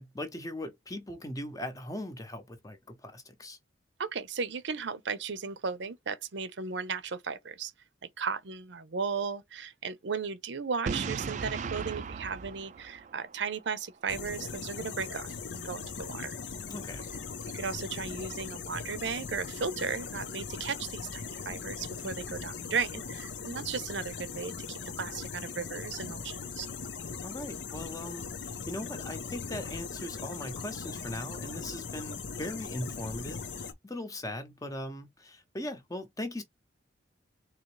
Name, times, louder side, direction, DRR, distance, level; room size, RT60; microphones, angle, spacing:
voice 1, 0.0-3.6 16.7-17.1 27.2-36.4, left 1 dB, 20° left, 0.8 m, -39 dB
voice 2, 4.0-7.7 8.2-16.4 17.5-26.7, right 5 dB, 70° right, 0.7 m, -35 dB
Boom, 10.9-13.7, right 5 dB, 40° right, 0.3 m, -36 dB
sound 1, 14.1-33.7, left 5 dB, 70° left, 0.7 m, -40 dB
3.8 x 2.9 x 3.2 m
head